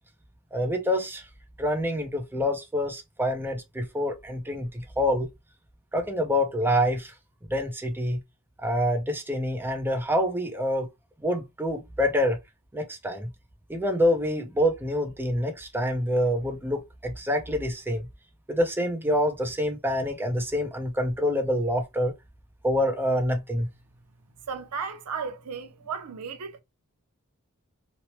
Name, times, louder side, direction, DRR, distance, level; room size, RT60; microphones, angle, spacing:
voice 1, 0.5-1.2 1.6-5.3 5.9-7.1 7.5-8.2 8.6-10.9 11.2-12.4 12.7-13.3 13.7-18.1 18.5-22.1 22.6-23.7, equal, 10° right, 0.5 m, -26 dB
voice 2, 24.5-26.6, right 5 dB, 90° right, 0.5 m, -34 dB
3.0 x 2.0 x 2.8 m
head